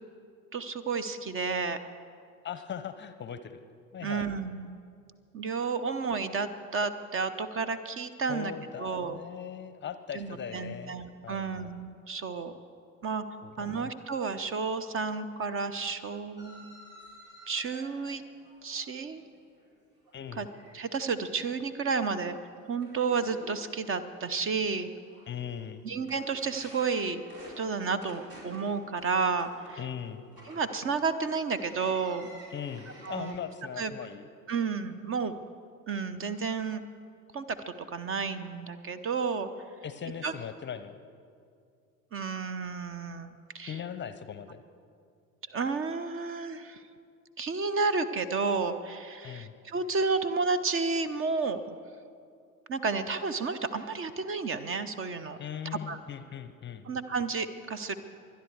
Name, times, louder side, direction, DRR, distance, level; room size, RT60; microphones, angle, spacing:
voice 1, 0.5-1.8 4.0-4.7 5.3-8.5 8.8-9.2 10.1-12.5 13.0-13.2 13.6-16.7 17.5-18.2 18.6-19.2 20.4-20.5 20.7-22.4 22.7-24.9 25.8-27.2 27.6-29.8 30.5-32.4 33.0-33.4 33.8-33.9 34.5-35.4 35.9-36.8 37.3-39.5 40.2-40.3 42.1-43.8 45.5-46.8 47.4-51.6 52.7-55.4 55.9-56.0 56.9-57.9, right 4 dB, 30° right, 12 dB, 0.8 m, -31 dB
voice 2, 2.4-3.6 3.9-4.3 8.3-11.0 11.2-11.8 13.4-13.9 20.1-20.5 25.3-25.8 29.8-30.2 32.5-34.3 39.8-41.0 43.7-44.6 49.2-49.5 55.4-56.8, left 8 dB, 25° left, 12 dB, 0.7 m, -39 dB
sound 1, 16.4-19.7 20.0-20.7 21.1-21.5 21.9-22.0 22.5-33.3, equal, 60° right, 4.7 m, -52 dB
24.0 x 10.5 x 4.7 m, 2.3 s
figure-of-eight pair, 65°, 41 cm